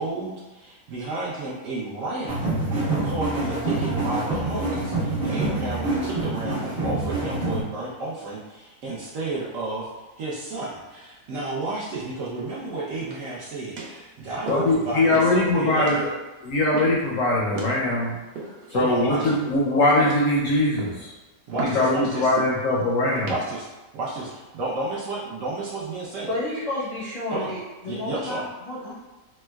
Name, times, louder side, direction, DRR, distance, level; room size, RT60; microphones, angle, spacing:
voice 1, 0.0-2.5 3.0-9.9 10.2-16.0 18.7-19.4 21.5-22.3 23.3-23.7 23.9-26.3 27.3-27.5 27.9-28.4, right 2 dB, 65° right, -6 dB, 0.8 m, -32 dB
sound 1, 2.3-7.6, right 2 dB, 45° right, 1.1 m, -26 dB
sound 2, 13.0-13.4 13.8-14.0 14.5-14.8 15.1-15.4 15.9-16.1 16.7-17.1 17.5-17.8 18.4-18.8 19.2-19.6 20.0-20.4 20.8-21.1 21.6-21.9 22.4-22.6 23.2-23.4 24.1-24.4, right 3 dB, 80° right, 1.2 m, -35 dB
voice 2, 14.5-16.1 16.4-18.2 18.7-21.1 21.6-23.3, left 2 dB, 70° left, -4 dB, 0.8 m, -21 dB
voice 3, 26.3-28.9, left 2 dB, 50° left, -10 dB, 0.4 m, -31 dB
4.3 x 2.1 x 2.2 m, 1.1 s
omnidirectional pair, 1.7 m